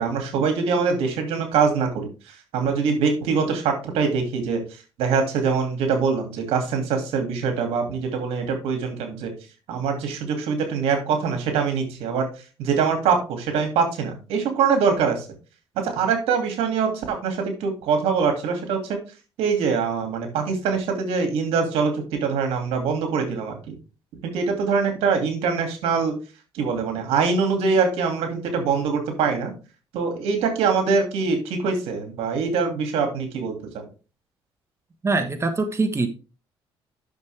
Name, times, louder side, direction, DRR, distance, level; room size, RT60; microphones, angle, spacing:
voice 1, 0.0-4.6 5.0-9.3 9.7-12.3 12.6-15.3 15.8-19.0 19.4-23.7 24.2-26.1 26.5-29.5 29.9-33.8, right 5 dB, 85° right, 5 dB, 2.5 m, -23 dB
voice 2, 35.0-36.1, right 3 dB, 30° right, 8 dB, 1.4 m, -23 dB
10.5 x 6.5 x 3.4 m, 0.33 s
cardioid pair, 85°, 10 cm